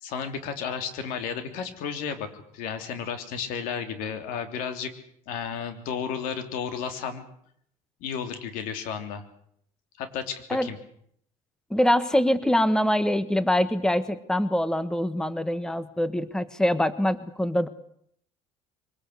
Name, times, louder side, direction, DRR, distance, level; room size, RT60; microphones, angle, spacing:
voice 1, 0.0-4.9 5.3-7.3 8.0-9.2 10.0-10.8, left 7 dB, 80° left, 8 dB, 3.3 m, -33 dB
voice 2, 11.7-17.7, left 1 dB, 5° left, 14 dB, 1.3 m, -24 dB
24.0 x 19.0 x 8.1 m, 0.68 s
cardioid pair, 105°, 14 cm